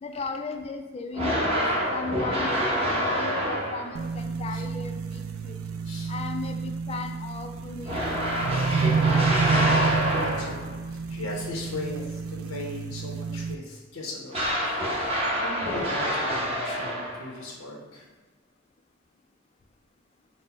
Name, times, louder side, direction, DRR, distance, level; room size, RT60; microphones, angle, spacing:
voice 1, 0.0-5.6 6.1-8.7, left 4 dB, 30° left, 5 dB, 0.3 m, -36 dB
sound 1, 1.1-4.1 7.9-10.8 14.3-17.4, equal, 30° right, 0.8 m, -27 dB
sound 2, 3.9-13.5, right 5 dB, 80° right, 0.3 m, -29 dB
voice 2, 10.2-10.6 11.1-18.1, left 2 dB, 85° left, -2 dB, 0.8 m, -38 dB
4.2 x 2.1 x 4.4 m, 1.2 s
head